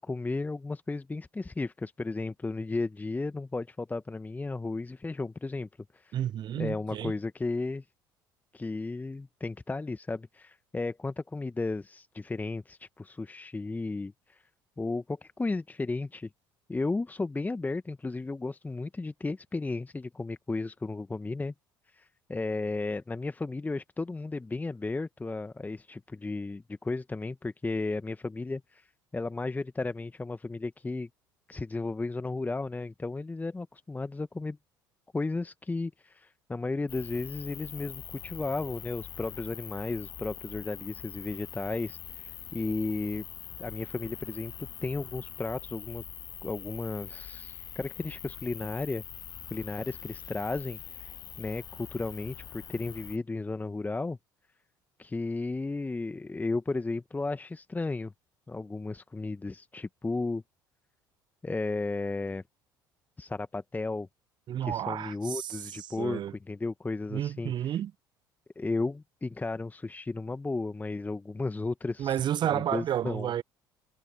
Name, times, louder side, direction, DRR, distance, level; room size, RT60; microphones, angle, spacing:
voice 1, 0.0-6.2 6.6-7.8 8.5-14.4 14.8-16.3 16.7-21.5 21.9-28.9 29.1-31.1 31.5-34.6 35.1-43.2 43.6-46.0 46.4-49.0 49.5-54.2 55.0-58.1 58.5-60.4 61.4-62.4 63.2-64.1 64.6-66.2 66.5-67.8 68.5-72.2 72.5-73.3, left 3 dB, 15° left, 1.3 m, -34 dB
voice 2, 6.1-7.1 64.5-66.3 67.1-67.9 72.0-73.4, right 10 dB, 40° right, 0.9 m, -31 dB
sound 1, 36.9-53.2, left 10 dB, 35° left, 0.5 m, -44 dB
figure-of-eight pair, 55°, 11 cm